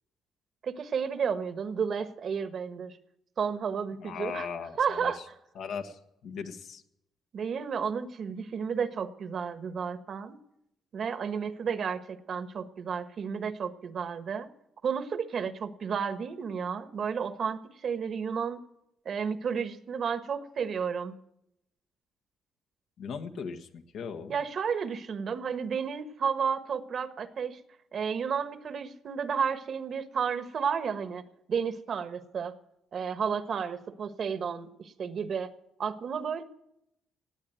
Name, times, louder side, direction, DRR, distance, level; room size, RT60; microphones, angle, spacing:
voice 1, 0.6-3.0 3.4-4.5 4.8-5.2 7.3-10.4 10.9-14.5 14.8-18.6 19.0-21.1 24.3-27.6 27.9-31.2 31.5-32.5 32.9-35.5 35.8-36.4, right 6 dB, 55° right, 10 dB, 1.3 m, -32 dB
voice 2, 4.0-5.2 5.5-6.8 23.0-24.4, left 6 dB, 75° left, 6 dB, 1.5 m, -38 dB
18.0 x 8.6 x 9.1 m, 0.81 s
cardioid pair, 90°, 0 cm